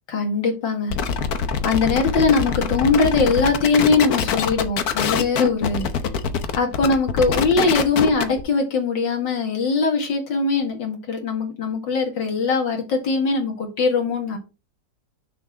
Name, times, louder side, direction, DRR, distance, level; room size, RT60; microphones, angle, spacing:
voice 1, 0.1-0.9 1.6-5.9 6.6-14.4, left 4 dB, 85° left, 3 dB, 2.6 m, -21 dB
sound 1, 0.9-8.4, left 6 dB, 60° left, 1.3 m, -24 dB
6.7 x 4.1 x 6.1 m, 0.29 s
omnidirectional pair, 1.9 m